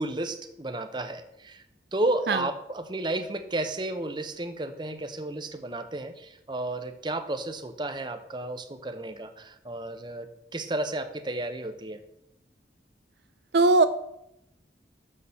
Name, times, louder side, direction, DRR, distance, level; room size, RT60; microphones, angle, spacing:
voice 1, 0.0-1.6 1.9-10.3 10.5-12.0, right 2 dB, 25° right, 8 dB, 0.7 m, -32 dB
voice 2, 13.5-13.9, right 3 dB, 65° right, 11 dB, 0.5 m, -19 dB
7.1 x 6.5 x 7.0 m, 0.80 s
head